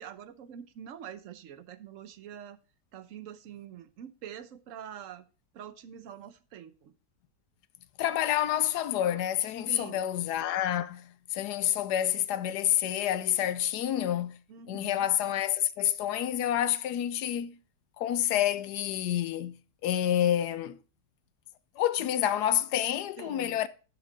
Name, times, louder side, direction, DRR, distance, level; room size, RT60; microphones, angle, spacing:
voice 1, 0.0-2.6 2.9-5.2 5.5-6.9 9.7-10.0 14.5-15.0 22.0-22.1 23.2-23.6, right 9 dB, 60° right, 1.0 m, -45 dB
voice 2, 8.0-14.4 14.7-17.6 18.0-19.6 19.8-20.8 21.8-23.7, left 11 dB, 75° left, 1.1 m, -28 dB
11.0 x 5.9 x 4.0 m
omnidirectional pair, 1.9 m